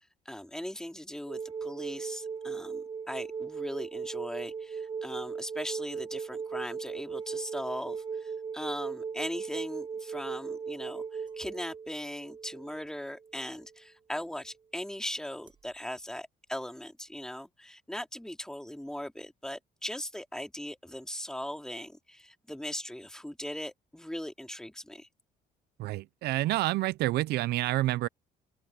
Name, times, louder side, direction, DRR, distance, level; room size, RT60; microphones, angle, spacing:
voice 1, 0.2-25.1, left 1 dB, 5° left, 2.7 m, -39 dB
sound 1, 1.3-13.7 15.5-15.6, right 5 dB, 25° right, 0.5 m, -38 dB
voice 2, 25.8-28.1, right 16 dB, 75° right, 0.5 m, -28 dB
open air
cardioid pair, 110°, 17 cm